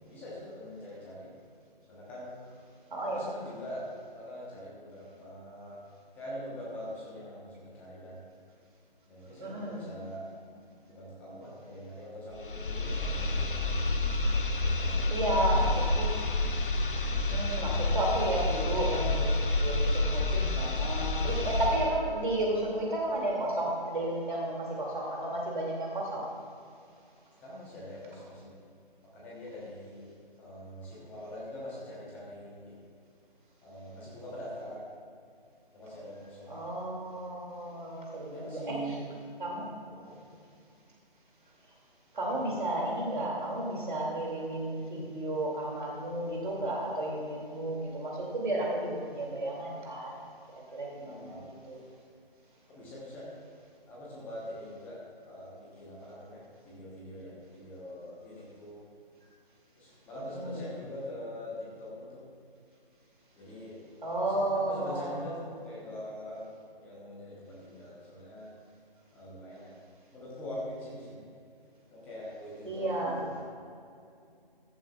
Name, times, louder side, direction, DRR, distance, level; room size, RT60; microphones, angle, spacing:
voice 1, 0.1-1.3 1.9-2.4 3.0-3.8 4.1-5.8 6.1-8.2 9.1-10.2 10.9-13.6 14.6-15.6 27.4-28.5 29.1-32.7 33.6-34.8 35.7-36.6 38.3-39.1 39.5-40.3 42.3-42.5 51.0-51.4 52.7-53.3 53.9-55.0 55.3-58.8 59.8-62.2 63.3-63.8 64.3-66.5 66.8-68.5 69.1-69.7 70.1-71.3 71.9-73.4, equal, 5° left, -6 dB, 1.1 m, -43 dB
voice 2, 2.9-3.2 9.4-9.8 15.1-16.1 17.1-26.3 36.5-38.7 39.4-39.7 42.1-50.2 50.7-51.8 60.3-60.6 64.0-65.3 72.6-73.2, right 1 dB, 55° right, -2 dB, 2.7 m, -32 dB
sound 1, 12.3-22.0, left 2 dB, 60° left, 0.9 m, -29 dB
15.5 x 11.0 x 2.4 m, 2.4 s
figure-of-eight pair, 150°, 29 cm